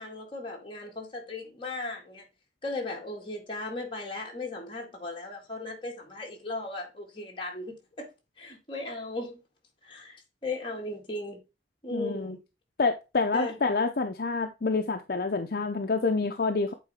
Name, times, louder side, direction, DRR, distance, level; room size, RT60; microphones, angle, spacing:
voice 1, 0.0-2.2 2.6-8.1 8.4-9.4 9.8-10.2 10.4-11.4 11.8-12.4 13.3-13.5, left 2 dB, 30° left, 2.0 m, -37 dB
voice 2, 11.9-12.4 12.8-16.7, left 3 dB, 55° left, 0.6 m, -27 dB
8.5 x 4.1 x 3.6 m
head